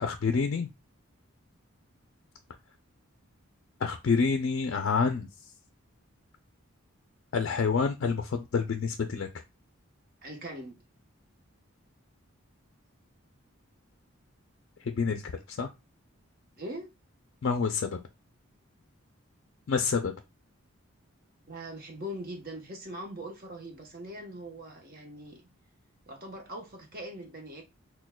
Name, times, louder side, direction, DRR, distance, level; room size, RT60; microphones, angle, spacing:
voice 1, 0.0-0.7 3.8-5.3 7.3-9.3 15.0-15.2 15.6-15.7 17.4-18.0 19.7-20.1, left 5 dB, 55° left, 0.4 m, -27 dB
voice 2, 10.2-10.8 16.6-16.9 21.5-25.4 26.1-27.6, equal, 45° right, 1.0 m, -41 dB
6.1 x 2.2 x 2.2 m
head